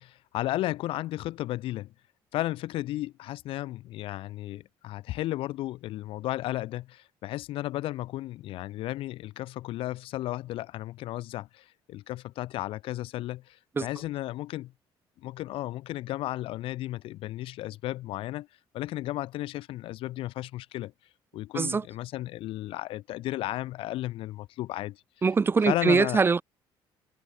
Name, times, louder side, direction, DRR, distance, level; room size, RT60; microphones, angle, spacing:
voice 1, 0.0-1.9 2.3-14.7 15.2-18.5 18.7-20.9 21.3-25.0 25.7-26.2, left 15 dB, 70° left, 0.4 m, -34 dB
voice 2, 25.2-26.4, right 5 dB, 25° right, 0.4 m, -23 dB
cardioid pair, 95°, 9 cm